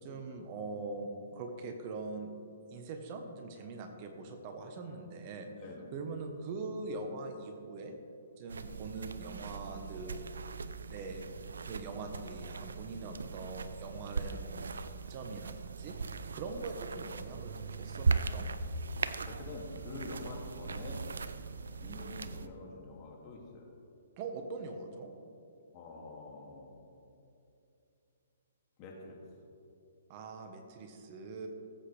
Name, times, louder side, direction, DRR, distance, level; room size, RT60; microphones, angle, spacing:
voice 1, 0.0-2.3 2.7-5.5 5.9-7.9 8.4-10.2 10.8-11.2 11.6-18.5 24.2-25.1 30.1-31.5, right 3 dB, 35° right, 5 dB, 1.2 m, -42 dB
voice 2, 5.6-5.9 8.6-8.8 16.6-16.7 19.2-21.1 21.8-23.7 25.7-26.8 28.8-29.2, left 3 dB, 30° left, -1 dB, 2.5 m, -46 dB
sound 1, 8.5-22.5, right 4 dB, 85° right, 0.5 m, -38 dB
18.5 x 8.2 x 3.4 m, 2.7 s
hypercardioid pair, 145°, 0 cm